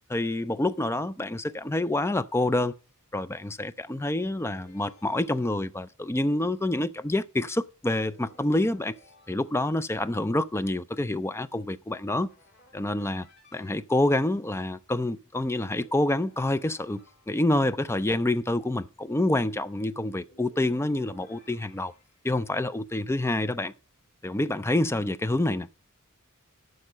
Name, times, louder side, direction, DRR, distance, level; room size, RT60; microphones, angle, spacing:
voice 1, 0.1-2.7 3.1-8.9 9.3-12.3 12.7-13.3 13.5-21.9 22.2-23.7 24.2-25.7, left 1 dB, 10° left, 0.5 m, -27 dB
sound 1, 4.4-6.0 7.9-10.0 12.3-13.7 15.7-17.8 20.2-22.3, left 2 dB, 50° left, 2.8 m, -59 dB
12.0 x 4.8 x 6.6 m
head